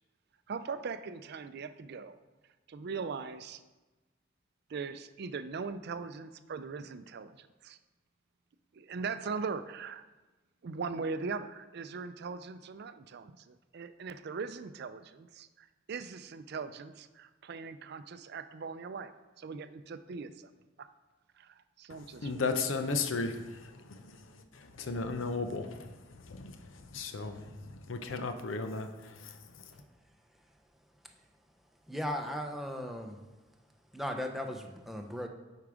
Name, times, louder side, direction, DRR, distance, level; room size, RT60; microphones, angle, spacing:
voice 1, 0.5-2.2 2.7-3.6 4.7-7.8 8.7-10.0 10.6-20.5 20.8-20.9 21.4-22.4, right 5 dB, 55° right, 0.4 m, -40 dB
voice 2, 21.9-29.7, left 3 dB, 85° left, 0.7 m, -36 dB
voice 3, 31.9-33.2 33.9-35.3, equal, ahead, 0.6 m, -37 dB
8.6 x 4.6 x 4.9 m
head